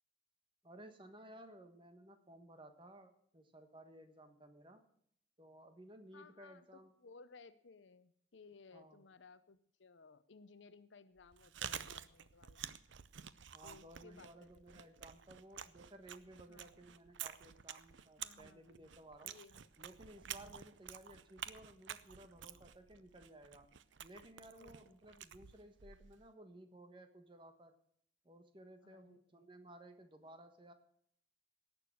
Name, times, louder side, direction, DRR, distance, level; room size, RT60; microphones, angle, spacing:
voice 1, 0.6-4.8 5.4-6.9 8.7-9.0 13.5-19.4 19.8-23.7 24.0-27.7 28.2-30.7, right 1 dB, 25° right, 7 dB, 1.3 m, -57 dB
voice 2, 6.1-12.7 13.6-14.9 16.5-16.8 18.2-18.9 19.2-19.7 20.3-20.6 24.6-24.9 28.8-29.5, left 4 dB, 75° left, 13 dB, 0.7 m, -61 dB
Chewing mastication, 11.2-26.3, right 9 dB, 75° right, 0.6 m, -50 dB
18.0 x 6.9 x 6.3 m, 0.65 s
head